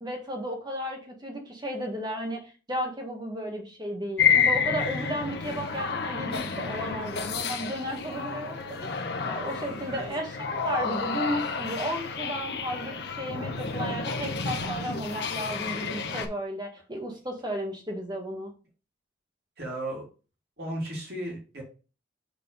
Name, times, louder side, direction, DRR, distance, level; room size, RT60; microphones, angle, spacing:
voice 1, 0.0-8.9 9.2-18.5, equal, 20° right, 2 dB, 1.6 m, -34 dB
sound 1, 4.2-16.3, left 5 dB, 55° left, 0.9 m, -30 dB
voice 2, 19.6-20.1 20.6-21.6, right 1 dB, 55° right, -2 dB, 3.0 m, -35 dB
6.4 x 4.2 x 5.3 m, 0.35 s
head